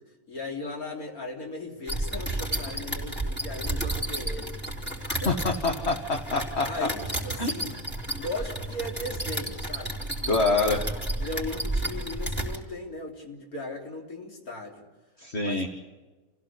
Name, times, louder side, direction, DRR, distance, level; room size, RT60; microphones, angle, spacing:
voice 1, 0.3-4.5 5.2-5.3 6.7-7.8 8.2-10.4 11.2-14.9 15.4-15.7, left 2 dB, 85° left, 1 dB, 3.9 m, -37 dB
sound 1, 1.9-12.6, right 1 dB, 5° left, 4.3 m, -32 dB
voice 2, 5.1-6.9 7.4-7.5 10.3-10.9 15.2-15.7, left 3 dB, 50° left, 3 dB, 1.9 m, -26 dB
28.5 x 16.5 x 8.5 m, 1.3 s
omnidirectional pair, 1.5 m